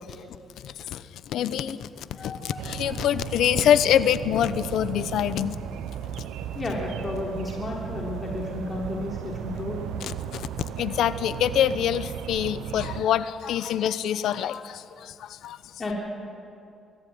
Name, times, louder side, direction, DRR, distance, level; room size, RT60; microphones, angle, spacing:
voice 1, 0.3-5.6 6.2-6.3 10.0-10.5 10.8-15.6, left 10 dB, 80° left, 14 dB, 0.8 m, -25 dB
voice 2, 2.1-2.6 6.5-9.8 15.8-15.9, left 2 dB, 35° left, -2 dB, 3.5 m, -32 dB
sound 1, 2.6-13.0, right 9 dB, 90° right, 0.8 m, -35 dB
23.5 x 14.0 x 9.4 m, 2.6 s
cardioid pair, 90°, 0 cm